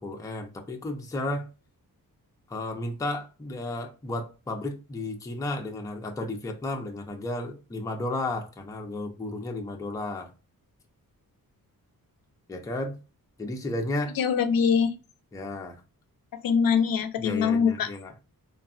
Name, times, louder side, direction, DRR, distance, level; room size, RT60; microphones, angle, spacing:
voice 1, 0.0-1.5 2.5-10.3 12.5-13.0 13.4-14.2 15.3-15.8 17.2-18.1, left 2 dB, 10° left, 0.4 m, -33 dB
voice 2, 14.2-14.9 16.4-17.9, left 6 dB, 70° left, 0.5 m, -23 dB
3.4 x 2.1 x 2.4 m
wide cardioid pair, 160°, 36 cm